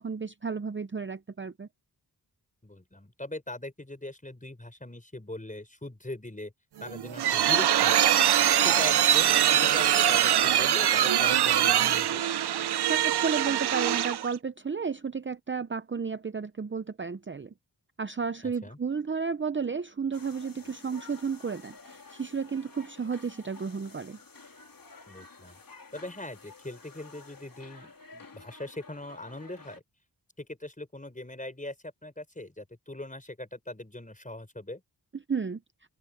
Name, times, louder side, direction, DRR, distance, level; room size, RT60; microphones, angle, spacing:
voice 1, 0.0-1.7 12.9-17.5 18.0-24.2 35.3-35.6, right 5 dB, 30° right, 0.6 m, -32 dB
voice 2, 2.6-6.5 6.8-8.1 8.6-12.2 18.4-18.8 25.1-25.6 25.9-29.8 30.4-34.8, left 1 dB, 20° left, 4.9 m, -41 dB
sound 1, 6.8-14.3, right 10 dB, 75° right, 0.6 m, -23 dB
sound 2, 20.1-29.8, left 4 dB, 60° left, 3.2 m, -51 dB
open air
wide cardioid pair, 75°, 39 cm